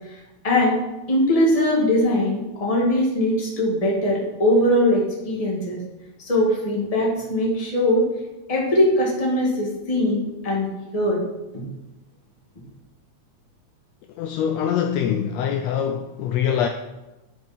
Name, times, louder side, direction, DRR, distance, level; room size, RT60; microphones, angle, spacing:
voice 1, 0.4-0.8 1.1-5.8 6.2-8.0 8.5-11.2 11.5-11.7, left 1 dB, 15° left, -3 dB, 1.5 m, -21 dB
voice 2, 14.2-16.7, left 8 dB, 80° left, 6 dB, 1.6 m, -24 dB
11.0 x 5.2 x 4.2 m, 1.0 s
omnidirectional pair, 3.3 m